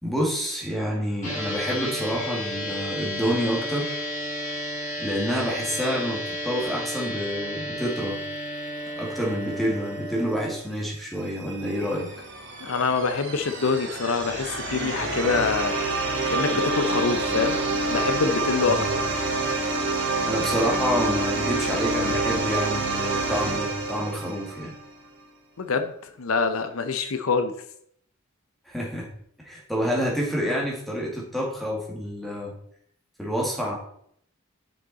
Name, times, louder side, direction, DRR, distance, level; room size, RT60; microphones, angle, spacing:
voice 1, 0.0-4.0 5.0-8.2 8.9-12.1 18.7-18.9 20.3-24.7 28.7-29.1 29.4-32.5 33.2-33.8, equal, ahead, -3 dB, 1.9 m, -28 dB
sound 1, 1.2-10.5, equal, 35° left, 2.9 m, -32 dB
sound 2, 11.0-24.9, right 2 dB, 55° right, 1.6 m, -27 dB
voice 2, 12.6-15.7 16.3-17.6 17.9-19.1 25.6-27.5, left 4 dB, 75° left, 8 dB, 0.7 m, -25 dB
7.9 x 6.2 x 4.1 m, 0.69 s
head